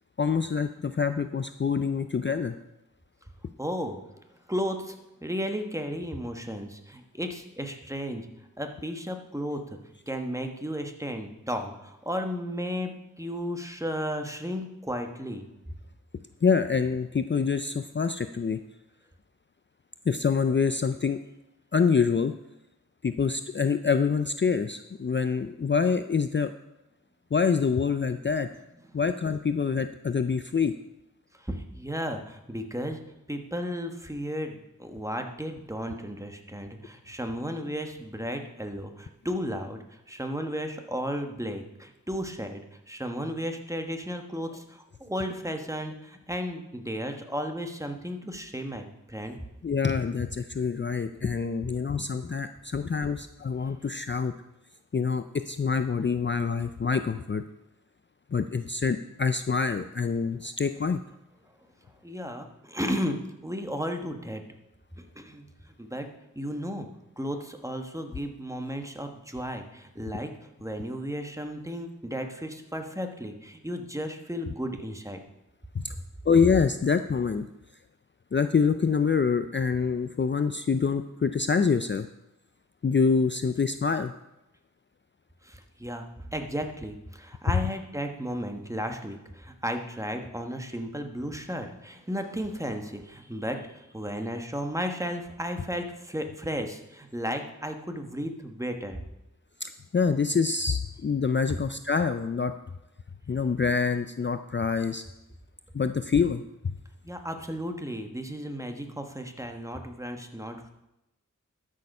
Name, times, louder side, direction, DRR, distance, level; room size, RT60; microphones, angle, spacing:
voice 1, 0.2-2.6 16.4-18.6 20.1-21.2 21.7-22.3 23.0-26.5 27.3-28.5 28.9-30.7 49.6-54.3 54.9-57.4 58.3-61.0 75.7-75.9 76.3-77.5 78.3-82.1 82.8-84.1 99.6-102.5 103.3-105.0 105.7-106.4, left 5 dB, 35° left, 9 dB, 0.4 m, -26 dB
voice 2, 3.6-4.0 4.5-8.3 8.6-9.8 10.1-15.5 31.4-33.0 33.3-49.4 53.6-53.7 62.0-64.4 65.0-65.5 65.8-66.1 66.3-66.9 67.2-70.3 70.6-75.2 85.4-99.0 101.5-101.6 107.0-110.7, equal, 10° right, 5 dB, 1.3 m, -34 dB
12.5 x 6.5 x 5.4 m, 0.91 s
wide cardioid pair, 55°, 32 cm